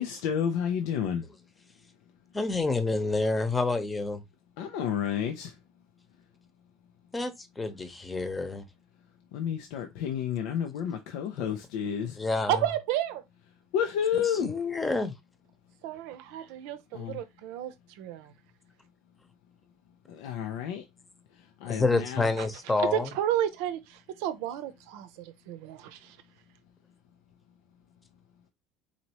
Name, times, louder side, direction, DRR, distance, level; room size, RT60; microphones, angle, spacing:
voice 1, 0.0-1.2 4.6-5.5 9.3-12.2 13.7-14.5 16.9-17.2 20.1-20.8 21.6-22.3, left 8 dB, 80° left, 0.5 m, -30 dB
voice 2, 2.3-4.2 7.1-8.6 11.4-11.5 12.1-12.6 14.1-15.1 21.7-23.1, left 3 dB, 15° left, 0.9 m, -28 dB
voice 3, 12.5-13.2 15.8-18.3 22.4-22.5 22.8-26.2, right 11 dB, 80° right, 0.7 m, -32 dB
4.1 x 2.9 x 3.0 m
supercardioid pair, 100°, 0 cm